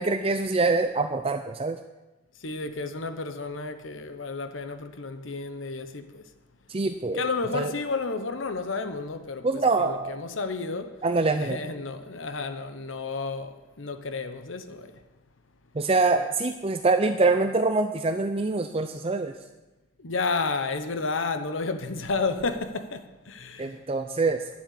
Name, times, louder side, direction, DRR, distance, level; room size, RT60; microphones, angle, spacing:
voice 1, 0.0-1.8 6.7-7.3 7.5-7.7 9.4-10.2 11.0-11.6 15.7-19.4 23.6-24.5, right 3 dB, 30° right, 0.5 m, -25 dB
voice 2, 2.4-6.2 7.1-11.0 11.4-14.9 20.0-23.8, left 4 dB, 80° left, 1.0 m, -31 dB
12.0 x 7.6 x 8.3 m
head